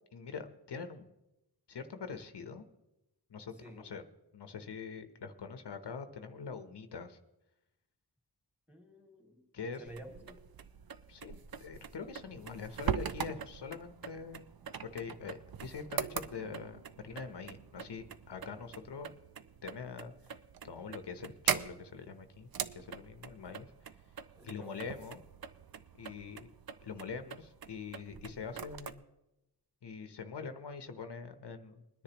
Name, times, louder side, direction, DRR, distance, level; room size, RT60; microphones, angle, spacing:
voice 1, 0.1-1.1 1.7-2.7 3.3-4.0 4.3-7.2 9.5-9.8 11.1-14.4 14.8-19.1 19.6-20.4 20.6-23.7 24.4-25.2 26.0-26.5 26.8-29.0 29.8-32.0, left 5 dB, 85° left, 8 dB, 0.9 m, -44 dB
voice 2, 3.6-3.9 8.7-9.4 9.8-10.4 24.4-24.7, right 1 dB, 5° right, 1 dB, 2.5 m, -51 dB
sound 1, 9.9-28.9, right 7 dB, 60° right, 0.6 m, -42 dB
21.5 x 10.0 x 3.0 m, 0.94 s
wide cardioid pair, 90°, 40 cm